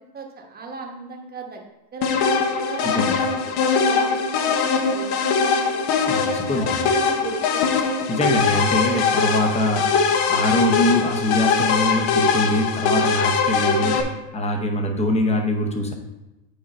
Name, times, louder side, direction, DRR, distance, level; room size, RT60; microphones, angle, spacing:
voice 1, 0.0-1.6 1.9-5.8 6.5-7.7, right 4 dB, 20° right, 1 dB, 1.1 m, -37 dB
sound 1, 2.0-14.0, left 5 dB, 55° left, 1.0 m, -21 dB
voice 2, 2.8-3.2 6.1-6.9 8.1-14.0 14.3-15.9, left 1 dB, 15° left, 3 dB, 0.9 m, -23 dB
8.1 x 4.7 x 4.2 m, 0.99 s
supercardioid pair, 135°, 47 cm